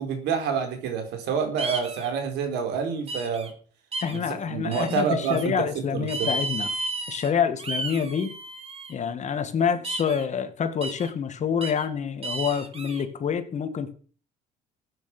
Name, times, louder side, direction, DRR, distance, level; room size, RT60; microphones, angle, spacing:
voice 1, 0.0-3.5 4.1-6.3, right 6 dB, 85° right, 6 dB, 4.6 m, -28 dB
sound 1, 1.6-2.1 3.1-3.5 3.9-4.2 4.7-5.4 6.1-7.3 7.6-8.9 9.8-10.2 10.8-11.1 11.6-11.8 12.2-13.0, right 2 dB, 35° right, 2.8 m, -33 dB
voice 2, 4.0-6.7 7.1-8.3 8.9-13.9, left 7 dB, 45° left, 9 dB, 2.2 m, -27 dB
15.0 x 9.5 x 6.2 m, 0.42 s
cardioid pair, 110°, 17 cm